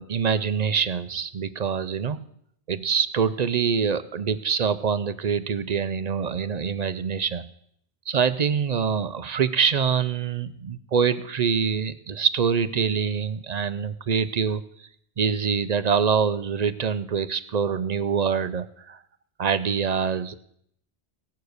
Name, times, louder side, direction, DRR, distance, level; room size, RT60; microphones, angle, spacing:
voice 1, 0.0-2.2 2.7-7.4 8.1-14.6 15.2-19.0 19.4-20.3, right 6 dB, 50° right, 13 dB, 0.6 m, -25 dB
17.0 x 7.1 x 6.5 m, 0.70 s
omnidirectional pair, 1.1 m